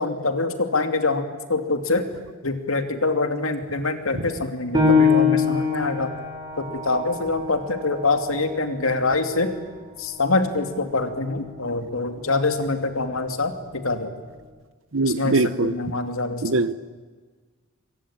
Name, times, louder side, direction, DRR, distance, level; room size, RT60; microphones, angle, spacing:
voice 1, 0.0-2.1 2.4-6.1 6.6-9.6 10.0-14.1 15.0-16.4, left 3 dB, 70° left, 8 dB, 2.7 m, -25 dB
Piano, 4.7-9.9 10.4-10.5 11.1-11.6, left 5 dB, 20° right, 5.7 m, -24 dB
voice 2, 14.9-15.7 16.4-16.7, right 2 dB, 65° right, 16 dB, 1.0 m, -21 dB
25.0 x 23.5 x 9.0 m, 1.5 s
head